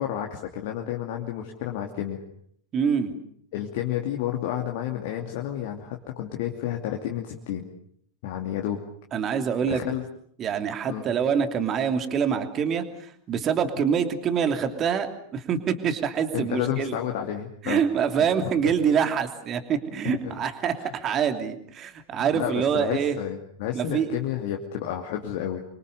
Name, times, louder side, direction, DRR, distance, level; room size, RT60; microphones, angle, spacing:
voice 1, 0.0-2.2 3.5-7.7 8.2-8.8 9.6-10.1 10.9-11.1 16.3-17.8 20.2-20.3 20.8-20.9 22.3-25.6, left 11 dB, 50° left, 2 dB, 2.7 m, -31 dB
voice 2, 2.7-3.1 9.1-9.8 10.4-16.9 17.6-23.1 23.7-24.1, right 7 dB, 30° right, 7 dB, 3.0 m, -25 dB
28.0 x 24.5 x 6.9 m, 0.65 s
figure-of-eight pair, 90°, 0 cm